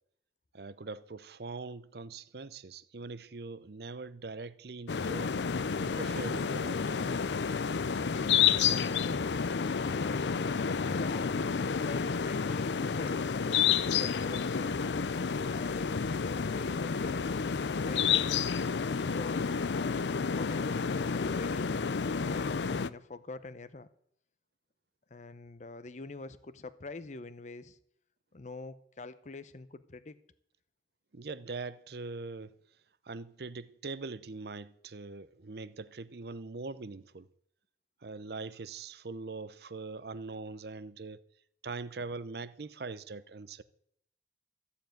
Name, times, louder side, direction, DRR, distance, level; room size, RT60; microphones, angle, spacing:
voice 1, 0.5-5.3 5.8-7.2 31.1-32.6 33.0-37.3 38.0-41.2 41.6-43.6, right 3 dB, 60° right, 0.7 m, -42 dB
sound 1, 4.9-22.9, left 6 dB, 80° left, 0.5 m, -30 dB
voice 2, 8.6-10.4 10.8-14.8 15.4-16.0 16.2-18.4 18.9-20.7 21.1-22.5 22.9-23.9 25.1-27.8 28.3-30.2, left 3 dB, 45° left, 0.7 m, -45 dB
14.5 x 7.2 x 9.1 m
head